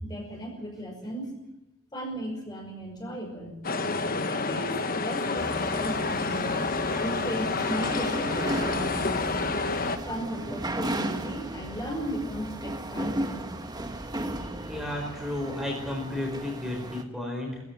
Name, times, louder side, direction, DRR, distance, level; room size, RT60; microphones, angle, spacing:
voice 1, 0.0-1.4 1.9-3.6 4.2-6.6 6.9-8.9 10.1-13.5, equal, 20° left, 1 dB, 5.6 m, -36 dB
sound 1, 3.6-10.0, left 3 dB, 45° left, 1.3 m, -29 dB
sound 2, 5.4-17.0, right 1 dB, 20° right, 1.5 m, -35 dB
voice 2, 14.3-17.6, left 1 dB, ahead, -1 dB, 4.9 m, -33 dB
21.5 x 15.0 x 9.4 m, 0.89 s
head